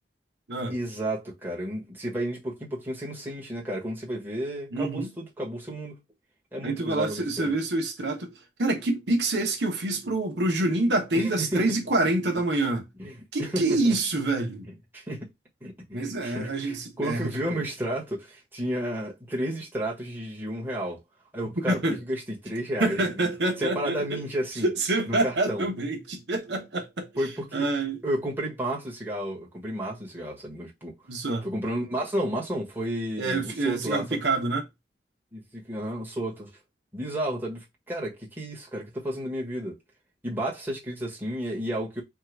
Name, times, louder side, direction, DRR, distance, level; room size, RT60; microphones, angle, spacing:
voice 1, 0.7-6.0 6.5-7.5 11.1-11.6 13.0-13.1 13.4-13.9 14.9-15.3 15.6-21.0 21.3-21.8 22.1-23.3 23.6-24.7 25.1-25.7 27.2-27.7 28.0-30.9 31.4-34.2 35.3-36.5 36.9-39.8 40.2-42.0, right 1 dB, 10° right, 1.3 m, -32 dB
voice 2, 4.7-5.1 6.6-8.3 8.6-12.9 13.3-14.7 15.9-17.7 21.7-22.0 22.8-24.2 24.6-27.1 27.5-28.0 31.1-31.5 33.2-34.7, right 2 dB, 75° right, 1.0 m, -27 dB
3.7 x 2.4 x 4.6 m
head